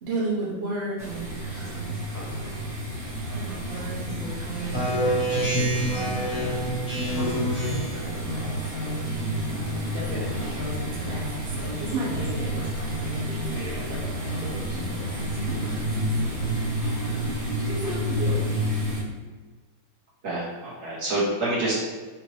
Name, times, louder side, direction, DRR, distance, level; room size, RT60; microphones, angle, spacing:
voice 1, 0.0-2.0 3.3-9.0 9.3-18.5, right 1 dB, 85° right, -4 dB, 0.5 m, -35 dB
sound 1, 1.0-19.0, equal, 20° right, 0.6 m, -30 dB
Speech synthesizer, 4.7-8.1, right 1 dB, 25° left, 0.7 m, -26 dB
voice 2, 20.2-21.7, right 2 dB, 40° right, -6 dB, 1.2 m, -27 dB
4.8 x 2.5 x 3.3 m, 1.4 s
omnidirectional pair, 2.2 m